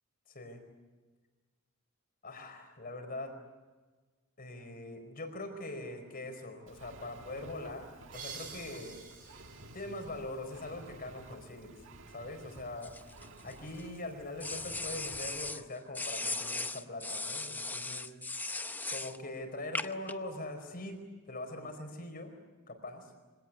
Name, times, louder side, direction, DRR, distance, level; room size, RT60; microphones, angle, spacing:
voice 1, 0.3-0.6 2.2-3.3 4.4-7.9 8.1-9.0 9.7-11.8 12.1-12.9 13.4-18.1 18.9-21.0 21.3-22.3 22.7-23.1, left 2 dB, 45° left, 6 dB, 4.7 m, -42 dB
Engine, 6.7-15.5, right 1 dB, 65° right, 1.7 m, -53 dB
sound 1, 8.1-10.8, right 5 dB, 40° right, 6.8 m, -49 dB
sound 2, 12.8-13.8 14.4-15.6 15.9-19.2 19.8-20.1, left 3 dB, 10° left, 0.7 m, -37 dB
25.5 x 18.0 x 9.5 m, 1.3 s
head